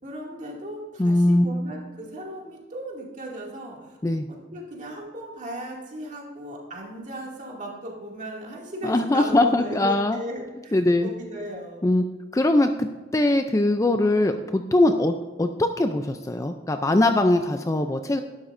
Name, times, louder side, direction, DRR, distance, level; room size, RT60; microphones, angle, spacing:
voice 1, 0.0-4.0 4.3-11.9, right 1 dB, 40° right, -2 dB, 2.4 m, -37 dB
voice 2, 1.0-1.5 4.0-4.3 8.8-10.2 10.7-11.1 11.8-12.0 12.3-15.1 15.4-18.2, left 1 dB, 15° left, 7 dB, 0.4 m, -21 dB
11.5 x 11.5 x 2.6 m, 1.3 s
head